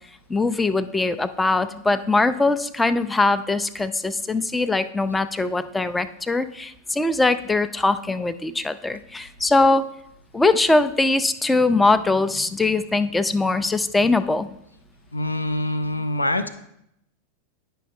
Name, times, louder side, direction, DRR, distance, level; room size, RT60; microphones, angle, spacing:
voice 1, 0.3-9.9 10.3-14.5, left 3 dB, 10° left, 12 dB, 0.4 m, -21 dB
voice 2, 15.1-16.5, left 1 dB, 85° left, 10 dB, 0.5 m, -24 dB
9.8 x 5.7 x 2.6 m, 0.77 s
figure-of-eight pair, 90°, 0 cm